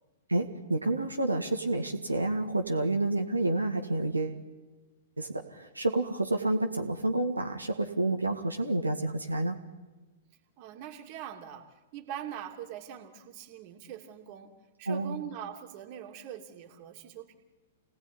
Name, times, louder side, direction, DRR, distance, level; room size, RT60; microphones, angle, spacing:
voice 1, 0.3-4.4 5.2-9.6 14.9-15.2, right 2 dB, 85° right, 3 dB, 2.0 m, -29 dB
voice 2, 10.6-14.5 14.8-17.4, right 10 dB, 40° right, 5 dB, 2.8 m, -42 dB
28.0 x 18.5 x 10.0 m, 1.2 s
figure-of-eight pair, 105°, 0 cm